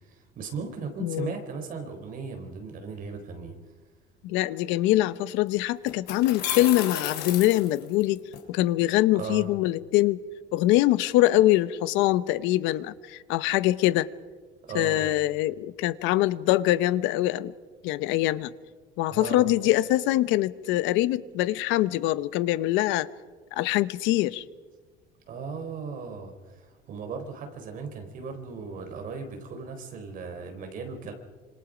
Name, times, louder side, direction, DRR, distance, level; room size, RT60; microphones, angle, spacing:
voice 1, 0.1-3.6 9.1-9.5 14.6-15.1 19.1-19.5 25.3-31.1, right 5 dB, 45° right, 4.0 m, -37 dB
voice 2, 1.0-1.3 4.2-8.2 8.5-10.2 10.5-14.1 14.7-17.5 17.8-18.5 19.0-23.1 23.5-24.4, left 15 dB, 70° left, 0.9 m, -24 dB
sound 1, 5.2-5.3 5.9-8.4, left 9 dB, 50° left, 3.8 m, -33 dB
26.5 x 26.5 x 5.1 m
cardioid pair, 160°, 20 cm